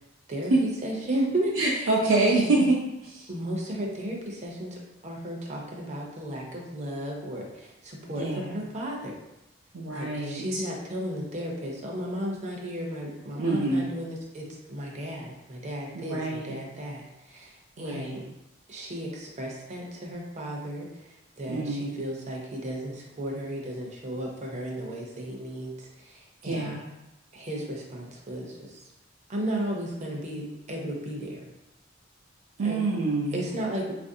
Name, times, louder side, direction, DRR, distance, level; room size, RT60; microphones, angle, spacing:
voice 1, 0.8-1.9 2.2-2.6 3.3-9.1 9.9-18.2 18.7-26.7 27.3-28.9 29.3-31.4 32.6-32.8 33.3-33.9, right 1 dB, 35° right, -1 dB, 0.6 m, -34 dB
voice 2, 1.6-3.3 8.2-8.6 9.7-10.6 13.4-13.9 15.9-16.5 17.8-18.2 21.5-21.9 26.4-26.9 32.6-33.4, right 2 dB, 80° right, -4 dB, 0.5 m, -26 dB
4.1 x 2.5 x 2.6 m, 0.94 s
head